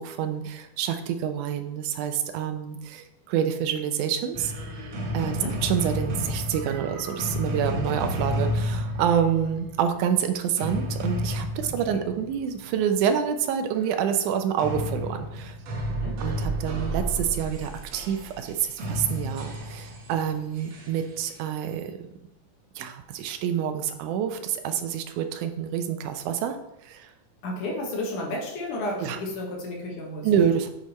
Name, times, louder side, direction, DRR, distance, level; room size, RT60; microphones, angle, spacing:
voice 1, 0.0-4.5 5.1-15.6 16.2-22.0 22.8-26.6 26.8-27.1 29.0-29.2 30.2-30.7, right 8 dB, 80° right, 7 dB, 2.2 m, -27 dB
sound 1, 4.3-12.7 14.6-21.4, equal, 60° right, 2.2 m, -31 dB
voice 2, 5.2-5.6 11.6-12.0 15.9-16.1 27.4-30.3, left 1 dB, 80° left, -1 dB, 2.8 m, -32 dB
8.4 x 5.1 x 4.2 m, 0.84 s
omnidirectional pair, 3.6 m